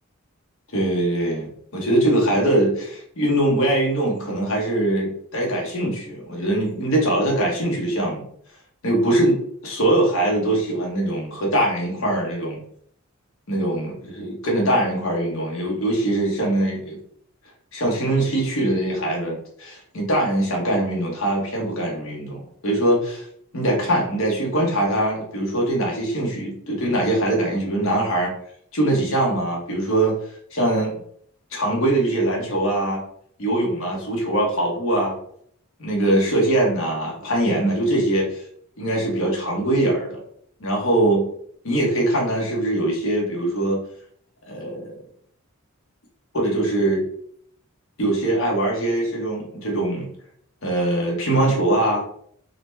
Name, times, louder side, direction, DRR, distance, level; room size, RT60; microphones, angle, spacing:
voice 1, 0.7-8.2 8.8-12.6 13.5-17.0 17.7-23.2 23.5-28.3 28.7-30.1 30.5-30.9 31.5-33.0 33.4-35.2 35.8-38.4 38.8-40.2 40.6-41.3 41.6-43.8 44.5-45.0 46.3-47.1 48.0-50.1 50.6-52.0, right 1 dB, 65° left, -2 dB, 1.1 m, -22 dB
3.8 x 2.2 x 3.3 m, 0.64 s
head